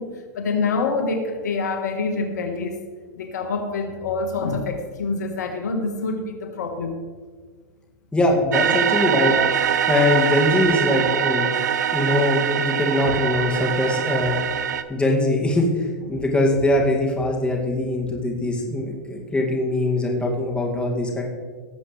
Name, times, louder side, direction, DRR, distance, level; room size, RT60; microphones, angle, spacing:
voice 1, 0.0-2.7 3.2-7.0, left 4 dB, 80° left, 5 dB, 1.4 m, -26 dB
voice 2, 8.1-11.5 11.9-14.4 14.9-21.2, left 1 dB, 10° left, -1 dB, 2.3 m, -22 dB
sound 1, 8.5-14.8, right 8 dB, 85° right, 0.6 m, -23 dB
18.0 x 7.7 x 3.3 m, 1.5 s
hypercardioid pair, 110°, 9 cm